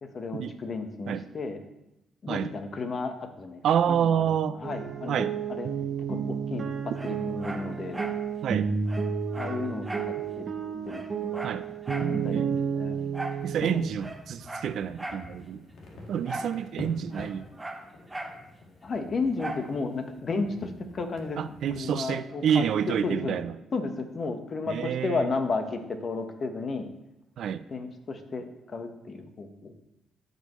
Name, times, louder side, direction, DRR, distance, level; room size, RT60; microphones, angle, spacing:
voice 1, 0.0-1.6 2.2-3.6 3.9-5.7 6.1-6.7 7.0-8.0 9.4-10.4 10.9-11.0 11.3-11.4 12.0-12.5 12.7-13.0 13.6-13.8 18.8-21.4 21.8-23.4 23.7-26.9 27.7-29.7, left 3 dB, 45° left, 6 dB, 1.1 m, -33 dB
voice 2, 3.6-4.6 5.1-5.3 8.4-8.7 11.4-11.6 12.3-12.7 13.4-15.7 16.1-17.4 21.4-23.5 24.7-25.3 27.4-27.6, right 8 dB, 70° right, 14 dB, 0.4 m, -28 dB
sound 1, 4.6-14.0, right 6 dB, 45° right, 0.9 m, -31 dB
Dog, 6.9-8.2 8.5-8.6 8.9-10.2 10.5-10.6 10.9-12.2 13.1-13.5 13.9-15.3 16.2-16.6 16.8-18.4 19.4-19.7 20.2-20.3, right 2 dB, 15° right, 0.8 m, -38 dB
sound 2, 13.4-21.8, left 2 dB, 65° left, 1.8 m, -47 dB
13.5 x 5.5 x 3.1 m, 0.89 s
cardioid pair, 90°, 0 cm